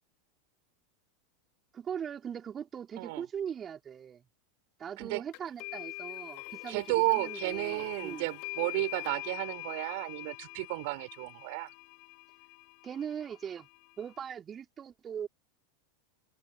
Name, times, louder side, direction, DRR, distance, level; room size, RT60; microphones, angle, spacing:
voice 1, 1.7-4.2 4.8-8.3 12.8-13.7 14.0-15.3, right 8 dB, 25° right, 3.9 m, -40 dB
sound 1, 5.3-14.2, left 32 dB, 50° left, 1.6 m, -44 dB
voice 2, 6.7-11.7, right 26 dB, 55° right, 4.4 m, -32 dB
open air
figure-of-eight pair, 85°, 0 cm